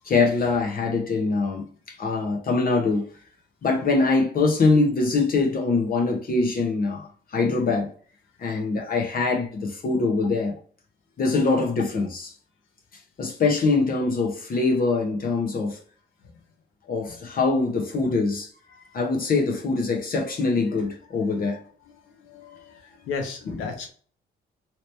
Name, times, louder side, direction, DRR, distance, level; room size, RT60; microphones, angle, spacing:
voice 1, 0.0-3.1 3.6-7.9 8.4-10.5 11.2-12.3 13.2-15.8 16.9-18.5 18.9-21.6 23.5-23.6, left 3 dB, 45° left, 0.8 m, -23 dB
voice 2, 22.0-23.9, left 5 dB, 85° left, 0.9 m, -35 dB
2.9 x 2.9 x 3.2 m
cardioid pair, 90°, 20 cm